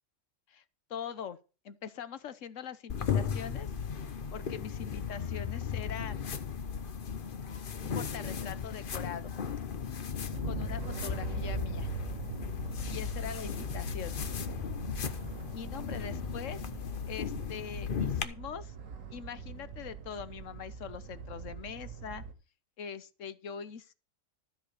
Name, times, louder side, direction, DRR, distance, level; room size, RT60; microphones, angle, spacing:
voice 1, 0.9-1.4 1.6-3.7 4.3-6.3 7.5-9.4 10.4-11.9 12.9-14.2 15.1-15.2 15.5-16.6 17.1-18.7 19.1-22.2 22.8-23.9, left 7 dB, 75° left, 1.3 m, -42 dB
sound 1, 2.9-18.2, left 7 dB, 45° left, 1.0 m, -36 dB
sound 2, 10.3-22.3, right 6 dB, 80° right, 1.7 m, -42 dB
13.0 x 4.9 x 6.6 m
omnidirectional pair, 1.3 m